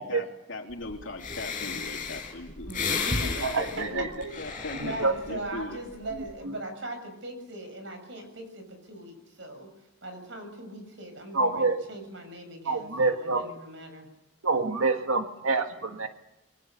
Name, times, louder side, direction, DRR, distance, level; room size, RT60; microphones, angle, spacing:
voice 1, 0.0-2.7 3.6-4.1 4.4-5.8, left 2 dB, 65° left, 2 dB, 3.7 m, -39 dB
Breathing, 0.9-1.0 1.2-5.4 5.9-6.3, left 4 dB, 35° left, 7.4 m, -33 dB
voice 2, 2.6-3.5 4.3-9.7 10.0-14.1, right 1 dB, 60° right, 6 dB, 7.3 m, -40 dB
voice 3, 3.4-4.3 4.7-5.1 6.4-6.5 11.3-11.8 12.6-13.5 14.4-16.1, right 3 dB, 85° right, 6 dB, 1.7 m, -27 dB
27.5 x 23.0 x 6.7 m, 0.88 s
head